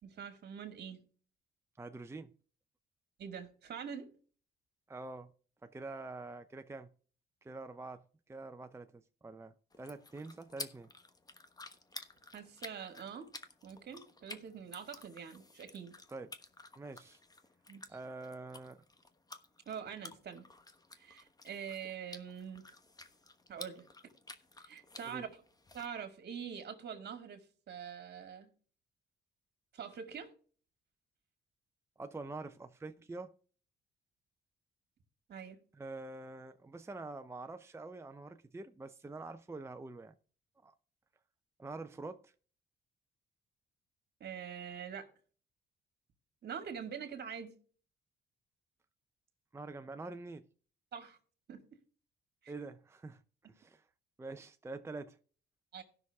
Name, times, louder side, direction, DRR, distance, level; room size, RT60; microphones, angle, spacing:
voice 1, 0.0-1.0 3.2-4.1 12.3-13.3 13.6-15.9 17.7-17.8 19.7-20.5 21.0-22.6 23.5-23.8 24.6-25.4 25.7-28.5 29.7-30.3 35.3-35.6 44.2-45.1 46.4-47.5 50.9-51.2 51.5-51.6 52.4-52.5 55.7-55.8, right 7 dB, 55° right, 2.2 m, -44 dB
voice 2, 1.8-2.3 4.9-5.3 5.6-6.9 7.4-10.9 16.1-16.3 16.8-17.2 17.9-18.8 25.1-25.2 32.0-33.3 35.7-40.2 40.6-40.7 41.6-42.3 49.5-50.5 52.5-53.8 54.2-55.2, right 3 dB, 15° right, 0.6 m, -46 dB
sound 1, 9.7-25.9, left 2 dB, 20° left, 1.1 m, -52 dB
17.0 x 6.1 x 3.5 m
cardioid pair, 90°, 20 cm